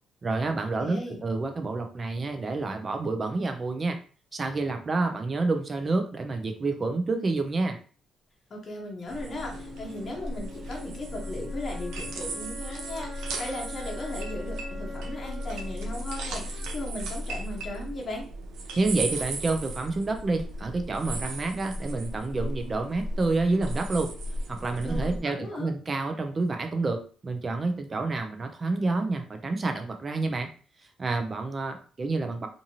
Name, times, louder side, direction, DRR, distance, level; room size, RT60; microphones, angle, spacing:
voice 1, 0.2-4.0 4.3-7.8 18.8-24.1 24.5-30.5 31.0-32.5, right 3 dB, 35° right, 5 dB, 0.6 m, -28 dB
voice 2, 0.8-1.2 8.5-18.3 24.8-25.7, left 1 dB, 40° left, -1 dB, 0.8 m, -37 dB
sound 1, 9.1-25.2, right 1 dB, 85° right, 0.6 m, -36 dB
Wind instrument woodwind instrument, 9.2-17.2, left 2 dB, 5° left, 1.0 m, -44 dB
2.6 x 2.6 x 2.9 m, 0.39 s
cardioid pair, 90°, 0 cm